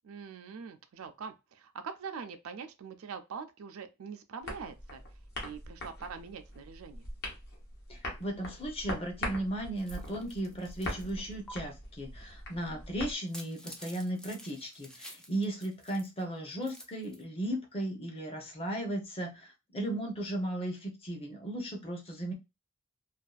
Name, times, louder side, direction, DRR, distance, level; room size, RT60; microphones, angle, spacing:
voice 1, 0.0-5.0 5.4-7.1, right 6 dB, 85° right, 0.4 m, -43 dB
sound 1, 4.4-13.1, left 1 dB, 50° left, 0.9 m, -42 dB
voice 2, 7.9-22.3, right 1 dB, 30° left, 0.7 m, -36 dB
Peeling Onion, 9.8-11.1 11.5-11.6 13.1-16.2 16.5-17.2, equal, 5° left, 0.4 m, -50 dB
2.6 x 2.3 x 2.3 m
head